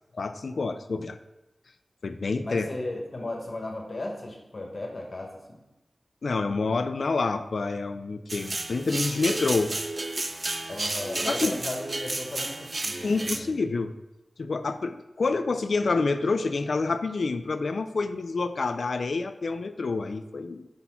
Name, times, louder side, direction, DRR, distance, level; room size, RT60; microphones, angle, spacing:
voice 1, 0.1-1.2 2.0-2.7 6.2-9.7 11.3-11.5 13.0-13.9 14.4-20.7, left 3 dB, 80° left, 10 dB, 0.4 m, -28 dB
voice 2, 2.4-5.6 10.7-13.6, left 2 dB, 50° left, 0 dB, 1.3 m, -36 dB
sound 1, 8.3-13.4, right 2 dB, 40° right, 0.5 m, -32 dB
5.7 x 4.2 x 5.6 m, 0.98 s
wide cardioid pair, 95°, 0 cm